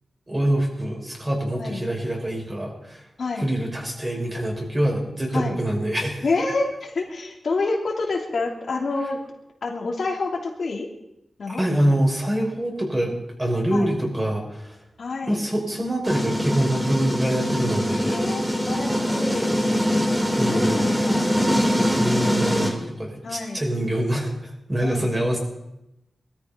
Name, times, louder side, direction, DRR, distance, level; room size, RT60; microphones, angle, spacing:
voice 1, 0.3-3.0 3.4-6.2 11.5-13.1 13.4-14.8 15.3-18.6 20.3-20.8 21.2-21.3 22.0-25.4, right 1 dB, 25° right, 0 dB, 5.7 m, -25 dB
voice 2, 6.2-9.2 9.6-10.9 11.4-11.7 13.7-13.9 15.0-15.4 17.9-19.6 20.5-21.4 23.2-23.6 24.8-25.1, left 3 dB, 70° left, 0 dB, 3.1 m, -28 dB
sound 1, 16.0-22.7, equal, 10° right, 3.8 m, -23 dB
20.5 x 13.5 x 5.2 m, 0.85 s
cardioid pair, 70°, 0 cm